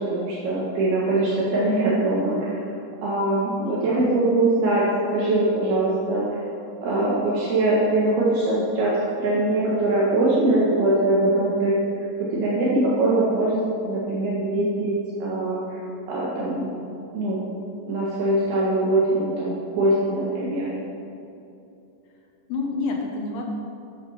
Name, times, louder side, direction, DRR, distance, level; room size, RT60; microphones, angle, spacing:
voice 1, 0.1-2.5 3.0-6.3 6.8-11.8 12.2-13.6 13.8-14.9 15.2-15.6 16.1-16.7 17.1-17.5 17.9-20.7, right 2 dB, 65° right, -7 dB, 3.3 m, -22 dB
voice 2, 3.6-4.1 22.5-23.4, left 3 dB, 70° left, 1 dB, 2.6 m, -29 dB
11.0 x 8.7 x 5.7 m, 2.7 s
omnidirectional pair, 5.1 m